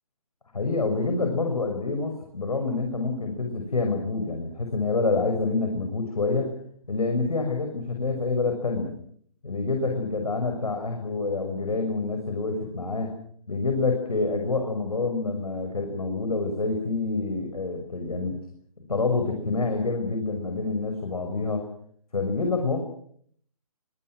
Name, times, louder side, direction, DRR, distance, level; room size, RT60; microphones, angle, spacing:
voice 1, 0.5-6.5 6.9-8.9 9.4-13.1 13.5-18.4 18.9-21.6 22.1-22.8, left 3 dB, 80° left, 4 dB, 6.1 m, -27 dB
26.0 x 25.5 x 6.3 m, 0.63 s
hypercardioid pair, 145°, 19 cm